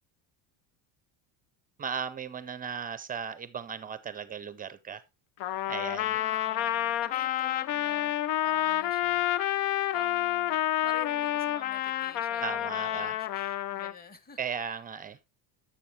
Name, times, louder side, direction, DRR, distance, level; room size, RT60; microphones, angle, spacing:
voice 1, 1.8-5.0 5.7-6.2 12.4-13.1 14.4-15.2, right 7 dB, 20° right, 0.4 m, -36 dB
Trumpet, 5.4-13.9, left 13 dB, 85° left, 0.7 m, -29 dB
voice 2, 5.8-8.2 8.4-9.6 9.9-14.8, left 4 dB, 20° left, 1.1 m, -49 dB
10.5 x 7.0 x 3.1 m
cardioid pair, 125°, 49 cm